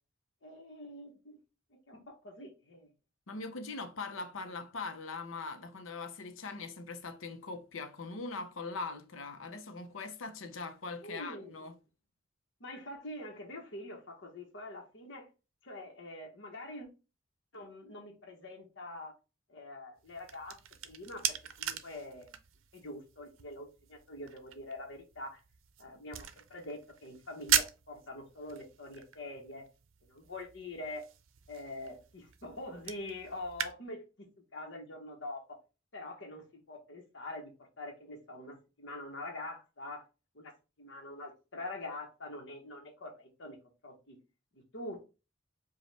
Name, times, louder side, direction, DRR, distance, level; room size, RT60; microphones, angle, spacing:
voice 1, 0.4-1.4 1.9-2.9 11.0-11.5 12.6-15.3 15.6-16.9 17.5-19.1 19.5-20.6 20.8-22.3 22.7-25.4 25.8-29.7 30.1-31.0 31.5-34.1 34.5-35.6 35.9-37.5 37.8-40.0 40.3-40.5 40.8-43.6 43.8-44.2 44.5-45.1, left 1 dB, 65° left, 1.1 m, -45 dB
voice 2, 3.3-11.8, left 3 dB, 85° left, 0.7 m, -41 dB
sound 1, 20.0-33.7, right 10 dB, 80° right, 0.5 m, -39 dB
5.1 x 2.4 x 3.3 m
head